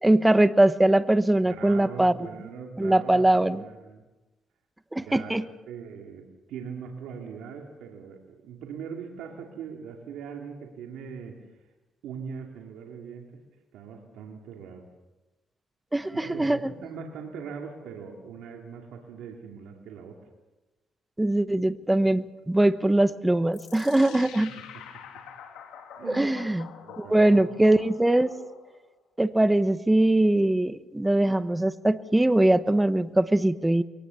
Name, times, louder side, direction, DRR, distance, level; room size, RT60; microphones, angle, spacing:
voice 1, 0.0-2.1 2.8-3.6 4.9-5.4 15.9-16.7 21.2-24.5 26.0-26.7 27.0-28.3 29.2-33.8, right 1 dB, 10° right, 13 dB, 1.0 m, -22 dB
voice 2, 1.6-4.0 5.0-5.4 5.7-11.4 12.0-13.4 13.7-14.9 16.1-20.2 24.6-25.3 26.0-26.4 26.8-27.5, right 6 dB, 85° right, 1 dB, 2.5 m, -41 dB
sound 1, 23.5-28.8, left 8 dB, 90° left, 2.7 m, -46 dB
22.5 x 18.5 x 7.0 m, 1.1 s
cardioid pair, 90°, 0 cm